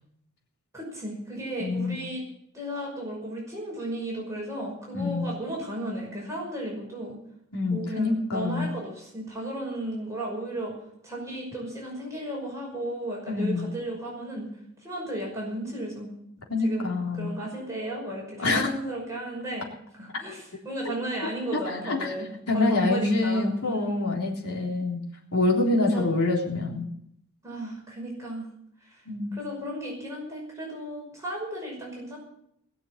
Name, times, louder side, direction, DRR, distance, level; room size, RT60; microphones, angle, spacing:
voice 1, 0.7-2.2 2.5-7.2 7.7-10.7 11.0-14.5 14.8-16.1 16.6-19.7 20.0-24.1 25.8-26.1 27.4-28.5 28.8-29.0 29.3-32.2, right 1 dB, 15° right, -4 dB, 5.8 m, -34 dB
voice 2, 1.6-2.0 4.9-5.2 7.5-8.7 13.3-13.7 16.5-17.3 18.4-18.7 21.5-22.1 22.5-25.0 25.3-26.9 29.1-29.4, left 2 dB, 80° left, -1 dB, 3.7 m, -26 dB
21.0 x 7.0 x 8.0 m, 0.74 s
head